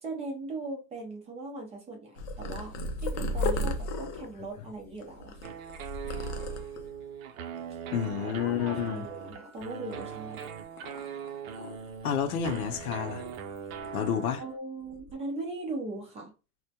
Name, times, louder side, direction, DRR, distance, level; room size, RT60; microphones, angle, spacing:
voice 1, 0.0-5.5 8.2-10.5 14.4-16.3, right 2 dB, 15° right, 0.5 m, -39 dB
Purr, 2.2-7.0 7.6-8.0 8.3-9.5 9.9-12.0 12.3-13.6 13.8-14.1 14.8-15.1, left 1 dB, 35° left, 0.4 m, -36 dB
sound 1, 5.4-14.6, right 7 dB, 70° right, 0.6 m, -40 dB
voice 2, 7.9-9.1 12.0-13.2 13.9-14.4, left 8 dB, 85° left, 0.6 m, -29 dB
2.1 x 2.1 x 2.7 m
hypercardioid pair, 125°, 43 cm